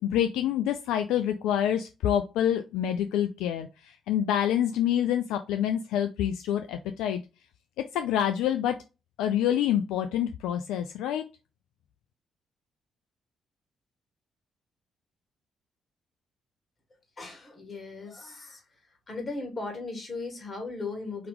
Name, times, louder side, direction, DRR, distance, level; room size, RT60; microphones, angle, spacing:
voice 1, 0.0-7.2 7.9-8.8 9.2-11.2, left 10 dB, 80° left, 8 dB, 0.3 m, -27 dB
voice 2, 17.2-18.6 19.1-21.3, left 3 dB, 45° left, 3 dB, 2.3 m, -37 dB
4.9 x 3.0 x 3.5 m, 0.28 s
hypercardioid pair, 45°, 0 cm